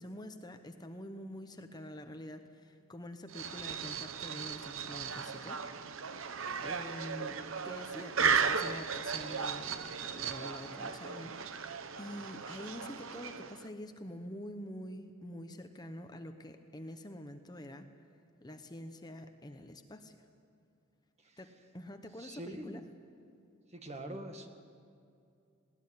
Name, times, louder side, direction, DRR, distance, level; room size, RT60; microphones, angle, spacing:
voice 1, 0.0-5.9 6.6-7.4 7.6-17.9 18.4-20.2 21.4-22.8, left 1 dB, 20° left, 7 dB, 1.0 m, -46 dB
sound 1, 3.3-13.7, right 6 dB, 70° right, 0.9 m, -36 dB
voice 2, 22.2-22.9 23.7-24.5, right 1 dB, 35° right, 6 dB, 1.6 m, -44 dB
20.5 x 17.5 x 9.7 m, 2.5 s
head